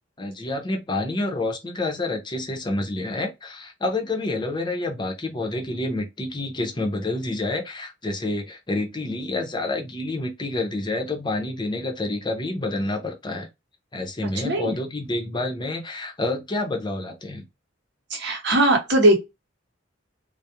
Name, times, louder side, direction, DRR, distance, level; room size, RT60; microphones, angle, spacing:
voice 1, 0.2-13.5 13.9-17.5, left 2 dB, 25° left, 0.6 m, -28 dB
voice 2, 14.4-14.7 18.1-19.2, right 1 dB, 60° right, 0.8 m, -19 dB
2.3 x 2.0 x 2.8 m
head